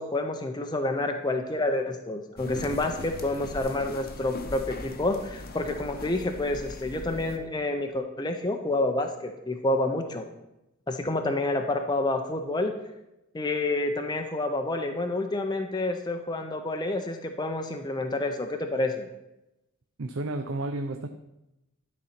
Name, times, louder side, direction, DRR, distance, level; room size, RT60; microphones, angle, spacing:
voice 1, 0.0-10.3 10.9-12.7 13.3-19.1, left 2 dB, 20° left, 5 dB, 0.6 m, -29 dB
sound 1, 2.4-7.4, left 2 dB, 45° left, 0.8 m, -40 dB
voice 2, 20.0-21.1, right 2 dB, 65° right, 7 dB, 0.5 m, -31 dB
11.5 x 4.2 x 5.8 m, 0.92 s
head